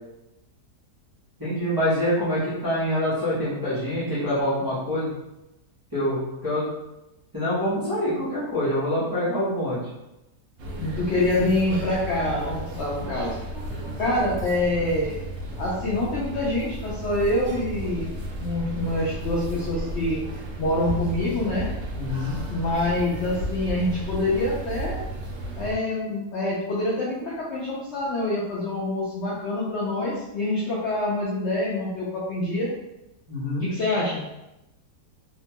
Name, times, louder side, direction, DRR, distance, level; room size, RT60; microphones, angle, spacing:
voice 1, 1.4-5.1 5.9-6.7 7.3-9.8 21.9-22.3 33.3-33.6, left 1 dB, 20° right, -11 dB, 0.6 m, -25 dB
sound 1, 10.6-25.7, right 1 dB, 70° right, 0.6 m, -33 dB
voice 2, 10.8-13.3 14.0-15.2 15.6-18.1 18.4-20.2 20.6-21.7 22.5-25.0 25.6-32.7 33.6-34.2, left 1 dB, 75° left, -5 dB, 0.6 m, -26 dB
2.8 x 2.2 x 2.8 m, 0.94 s
omnidirectional pair, 1.8 m